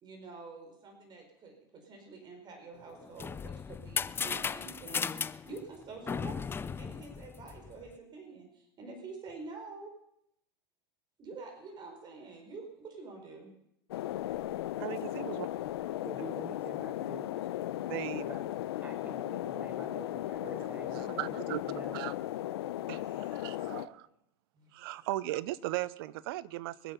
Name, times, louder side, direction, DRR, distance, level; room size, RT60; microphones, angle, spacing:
voice 1, 0.0-9.9 11.2-13.5 19.6-20.1 23.2-23.8 24.5-24.7, right 4 dB, 35° right, 4.6 m, -48 dB
sound 1, 2.9-7.9, left 6 dB, 15° left, 0.5 m, -36 dB
sound 2, 13.9-23.9, left 13 dB, 75° left, 0.8 m, -36 dB
voice 2, 14.8-15.5 17.9-18.2 20.6-22.1 22.9-24.1 24.7-26.9, right 16 dB, 65° right, 0.7 m, -38 dB
voice 3, 16.0-17.3 18.2-18.5 18.8-22.0, right 3 dB, 15° right, 0.9 m, -47 dB
23.5 x 8.2 x 5.8 m
hypercardioid pair, 105°, 13 cm